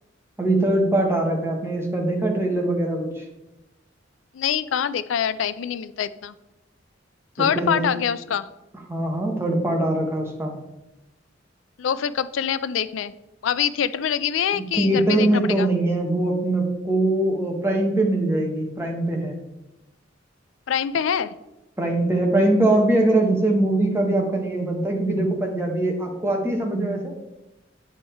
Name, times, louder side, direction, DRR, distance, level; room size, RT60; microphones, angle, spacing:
voice 1, 0.4-3.2 7.5-7.8 8.9-10.5 14.5-19.4 21.8-27.1, right 1 dB, 15° right, 1 dB, 1.1 m, -22 dB
voice 2, 4.3-6.3 7.4-8.5 11.8-13.1 13.4-15.7 20.7-21.3, left 8 dB, 85° left, 15 dB, 0.4 m, -25 dB
9.1 x 3.6 x 4.4 m, 0.96 s
head